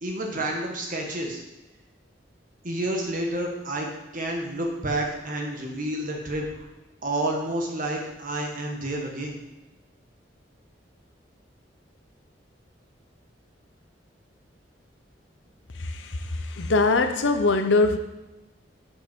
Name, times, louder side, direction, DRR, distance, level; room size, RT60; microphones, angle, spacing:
voice 1, 0.0-1.4 2.6-3.9 4.1-6.7 7.0-9.4, right 1 dB, 45° right, 1.4 m, -29 dB
voice 2, 15.8-18.0, left 3 dB, 80° left, 0.7 m, -22 dB
6.5 x 5.2 x 5.2 m
head